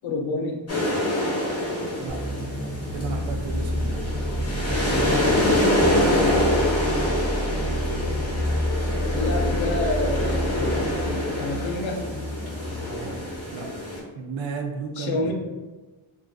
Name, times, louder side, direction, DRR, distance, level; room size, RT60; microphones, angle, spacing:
voice 1, 0.0-0.7 4.9-5.3 9.1-10.9 11.4-12.1 15.0-15.3, left 2 dB, 70° left, 1 dB, 0.6 m, -29 dB
sound 1, 0.7-14.0, left 1 dB, 30° left, 0.7 m, -26 dB
sound 2, 2.1-13.4, left 1 dB, 5° right, 0.7 m, -32 dB
sound 3, 2.9-11.1, right 1 dB, 40° right, 0.7 m, -30 dB
voice 2, 2.9-4.1 13.5-13.7 14.2-15.3, right 5 dB, 70° right, 3 dB, 0.5 m, -33 dB
2.4 x 2.3 x 2.3 m, 1.2 s
cardioid pair, 90°, 48 cm